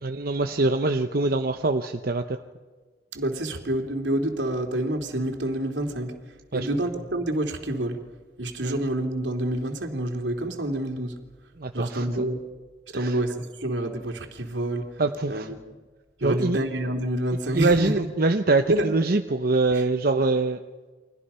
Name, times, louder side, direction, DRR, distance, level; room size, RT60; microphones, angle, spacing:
voice 1, 0.0-2.4 6.5-6.7 8.6-8.8 11.6-12.1 12.9-13.1 15.0-15.5 16.2-16.6 17.5-20.6, right 3 dB, 55° right, 5 dB, 1.0 m, -24 dB
voice 2, 3.1-6.2 6.5-8.0 8.4-11.2 11.7-12.5 12.9-15.0 15.3-15.6 16.2-18.1 18.7-18.9 19.7-19.8, right 1 dB, 80° right, 4 dB, 3.1 m, -28 dB
30.0 x 24.5 x 5.7 m, 1.4 s
head